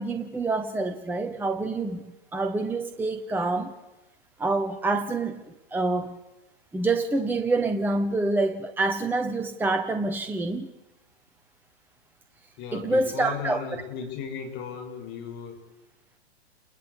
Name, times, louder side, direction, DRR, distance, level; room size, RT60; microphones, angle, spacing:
voice 1, 0.0-3.7 4.4-6.2 6.7-10.7 12.7-13.6, right 2 dB, 5° right, 7 dB, 1.3 m, -27 dB
voice 2, 12.6-15.7, left 7 dB, 30° left, 4 dB, 7.0 m, -36 dB
29.0 x 21.5 x 8.7 m, 1.0 s
figure-of-eight pair, 115°, 33 cm